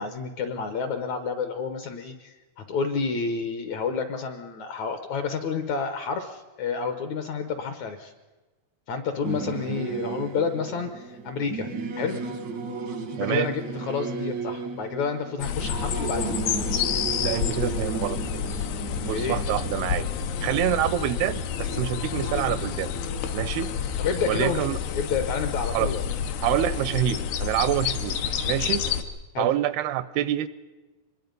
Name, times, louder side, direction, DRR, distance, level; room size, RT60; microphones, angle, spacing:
voice 1, 0.0-8.1 8.9-11.7 12.0-12.2 13.2-16.4 19.1-19.4 24.0-26.0 29.3-29.5, left 5 dB, 70° left, 8 dB, 1.8 m, -30 dB
Singing / Musical instrument, 9.2-21.1, right 4 dB, 75° right, 1.0 m, -34 dB
voice 2, 13.2-13.5 17.2-18.6 19.1-20.1 20.4-22.9 23.3-23.7 24.3-24.8 25.7-25.9 26.4-28.2 28.4-28.9 29.4-30.5, right 12 dB, 90° right, 15 dB, 2.8 m, -26 dB
sound 1, 15.4-29.0, left 8 dB, 85° left, 3.2 m, -29 dB
25.0 x 21.0 x 5.3 m, 1.2 s
omnidirectional pair, 4.4 m